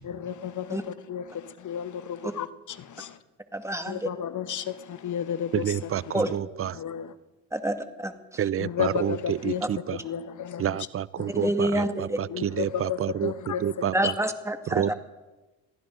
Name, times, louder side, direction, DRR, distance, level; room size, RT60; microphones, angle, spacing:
voice 1, 0.0-2.5 2.8-3.2 3.9-5.9 6.7-7.1 8.6-9.6 9.9-10.8 11.2-11.3 12.3-13.6 14.0-14.1, left 9 dB, 50° left, 1.2 m, -32 dB
voice 2, 3.5-4.1 6.1-6.3 7.5-8.4 9.6-9.7 11.3-12.2 13.9-14.9, right 1 dB, 5° right, 2.0 m, -28 dB
voice 3, 5.5-6.7 8.4-10.0 10.6-14.1 14.8-14.9, right 10 dB, 35° right, 0.5 m, -29 dB
23.5 x 15.0 x 3.8 m
supercardioid pair, 60°, 38 cm